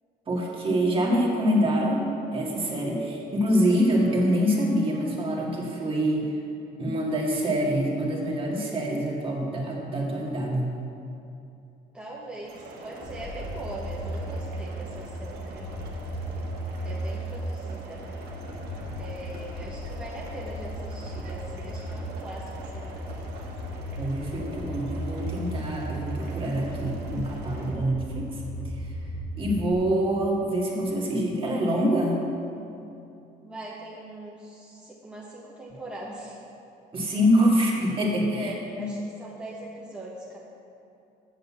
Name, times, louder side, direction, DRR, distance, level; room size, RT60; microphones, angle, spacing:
voice 1, 0.3-2.1 2.3-6.3 6.8-10.7 24.0-28.4 28.8-28.9 29.4-32.2 36.9-38.9, equal, 30° right, -2 dB, 2.0 m, -25 dB
voice 2, 11.9-15.7 16.8-18.0 19.0-23.0 33.4-36.4 38.4-40.4, right 1 dB, 5° right, -6 dB, 1.4 m, -41 dB
sound 1, 12.4-27.7, right 2 dB, 70° right, 1.7 m, -43 dB
sound 2, 13.0-29.7, equal, 45° left, 1.3 m, -36 dB
8.0 x 6.6 x 7.3 m, 2.7 s
cardioid pair, 110°, 17 cm